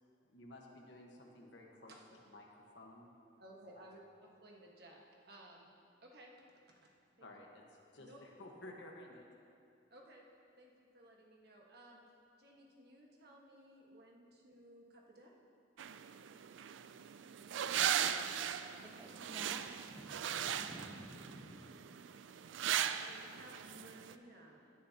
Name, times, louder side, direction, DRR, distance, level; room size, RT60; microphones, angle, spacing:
voice 1, 0.2-1.9 2.2-3.1 3.8-3.9 7.2-7.6 7.9-9.2, left 1 dB, 65° left, 0 dB, 1.4 m, -54 dB
voice 2, 3.4-4.0 4.4-5.0 5.3-5.7 6.0-6.3 7.2-7.3 8.0-8.2 9.9-10.2 10.6-12.0 12.4-15.3 23.0-24.6, right 1 dB, 55° right, -1 dB, 1.5 m, -58 dB
sound 1, 15.8-24.1, right 9 dB, 80° right, 0.4 m, -38 dB
voice 3, 18.9-19.6 19.9-21.8, equal, 20° right, 1 dB, 1.0 m, -53 dB
16.5 x 9.9 x 2.9 m, 2.6 s
head